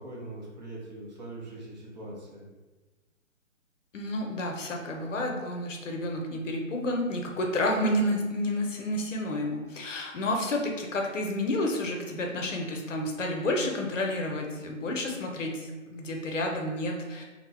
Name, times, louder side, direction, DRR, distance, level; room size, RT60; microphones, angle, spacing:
voice 1, 0.0-2.5, right 2 dB, 35° right, -4 dB, 0.6 m, -42 dB
voice 2, 3.9-17.2, left 1 dB, 70° left, 1 dB, 0.7 m, -30 dB
2.7 x 2.1 x 3.1 m, 1.2 s
figure-of-eight pair, 145°, 39 cm